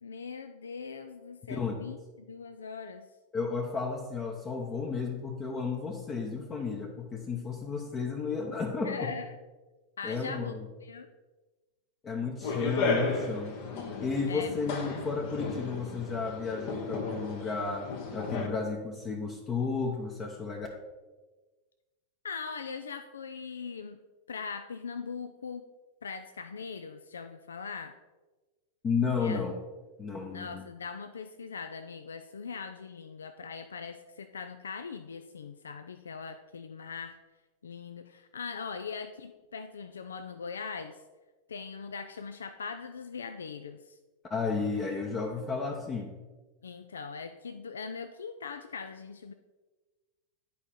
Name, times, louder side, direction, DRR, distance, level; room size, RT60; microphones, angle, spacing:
voice 1, 0.0-3.1 8.8-9.4 10.0-10.5 10.8-11.1 14.3-15.0 22.2-24.0 24.3-25.7 26.0-27.9 29.2-29.4 30.3-37.2 37.6-41.0 41.5-44.0 46.6-49.3, left 5 dB, 70° left, 9 dB, 0.4 m, -41 dB
voice 2, 1.5-1.8 3.3-9.1 10.0-10.6 12.0-13.5 14.0-20.7 28.8-29.5 30.0-30.6 44.3-46.1, left 4 dB, 25° left, 1 dB, 0.9 m, -33 dB
sound 1, 12.4-18.5, left 4 dB, 50° left, 1.1 m, -34 dB
10.0 x 4.9 x 4.2 m, 1.2 s
figure-of-eight pair, 90°, 0 cm